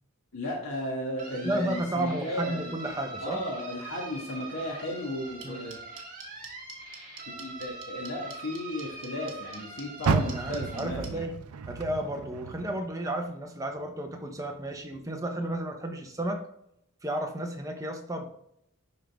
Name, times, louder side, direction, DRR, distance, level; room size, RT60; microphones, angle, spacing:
voice 1, 0.3-2.7 3.2-5.8 7.3-11.3, left 1 dB, 80° left, -3 dB, 1.6 m, -35 dB
sound 1, 1.2-10.8, right 3 dB, 40° right, 1.8 m, -43 dB
voice 2, 1.3-3.4 5.4-5.6 10.0-11.4 11.7-16.5 17.0-18.3, right 1 dB, 15° right, 3 dB, 0.9 m, -32 dB
sound 2, 5.4-11.1, right 6 dB, 60° right, 1.3 m, -44 dB
Car, 10.0-13.3 13.7-15.1 15.5-15.6 16.2-16.3, right 5 dB, 85° right, 0.5 m, -32 dB
11.0 x 3.8 x 3.5 m, 0.76 s
head